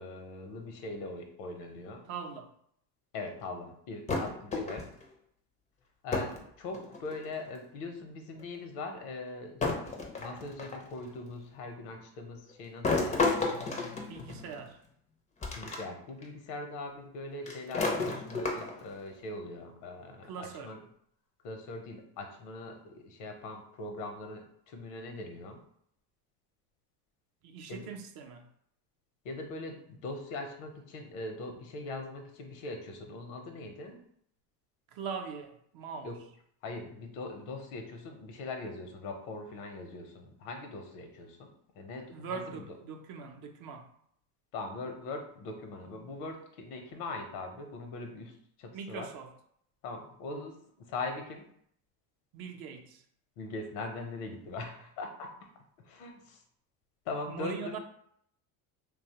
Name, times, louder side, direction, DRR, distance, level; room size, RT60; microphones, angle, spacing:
voice 1, 0.0-2.0 3.1-4.9 6.0-9.7 10.1-13.2 15.6-20.8 21.4-25.6 27.7-27.9 29.2-34.0 36.0-36.2 36.6-42.6 44.5-48.3 48.6-49.1 49.8-51.4 53.4-55.3 55.8-56.4 57.1-57.8, left 3 dB, 80° left, 0.8 m, -41 dB
voice 2, 2.1-2.5 14.1-14.8 20.2-20.8 27.4-28.5 34.9-36.1 42.1-43.9 48.7-49.3 52.3-53.0 57.3-57.8, right 6 dB, 50° right, 0.5 m, -41 dB
sound 1, 4.1-5.0 6.1-6.4 6.7-7.3 8.4-8.5 9.6-10.9 12.8-14.7 15.4-15.8 16.2-16.3 17.5-18.9, left 3 dB, 15° left, 0.4 m, -32 dB
2.8 x 2.2 x 2.8 m
supercardioid pair, 100°, 46 cm